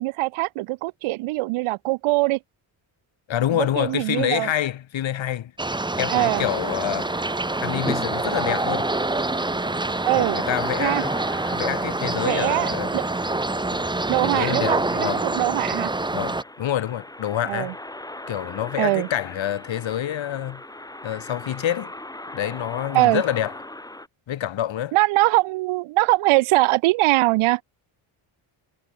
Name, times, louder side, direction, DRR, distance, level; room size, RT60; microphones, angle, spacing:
voice 1, 0.0-2.4 3.5-4.5 6.1-6.4 10.0-10.4 10.8-11.0 12.2-13.0 14.1-15.9 17.4-17.7 18.8-19.1 22.9-23.2 24.9-27.6, right 20 dB, 80° right, 0.6 m, -22 dB
voice 2, 3.3-5.5 6.0-7.3 7.6-8.9 10.1-11.1 11.5-12.9 13.7-13.9 14.2-15.2 16.1-17.8 18.3-20.6 21.0-21.9 22.3-23.5 24.3-25.0, left 11 dB, 65° left, 3.2 m, -27 dB
sound 1, 5.6-16.4, right 2 dB, 10° right, 1.1 m, -26 dB
sound 2, 6.3-24.1, left 1 dB, 5° left, 2.5 m, -40 dB
cardioid pair, 110°, 50 cm